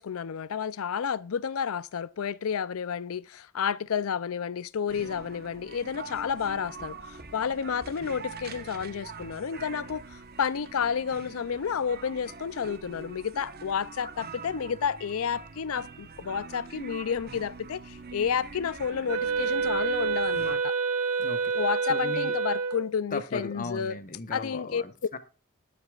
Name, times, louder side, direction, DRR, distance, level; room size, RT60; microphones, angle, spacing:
voice 1, 0.0-20.7 21.5-24.0 24.3-24.8, left 7 dB, 70° left, 0.5 m, -31 dB
sound 1, 4.9-20.6, right 4 dB, 45° right, 1.1 m, -44 dB
Wind instrument woodwind instrument, 19.1-22.9, right 5 dB, 85° right, 1.1 m, -28 dB
voice 2, 21.2-21.5 21.9-22.3 23.1-25.2, left 3 dB, 40° left, 1.2 m, -37 dB
20.5 x 8.2 x 2.4 m
head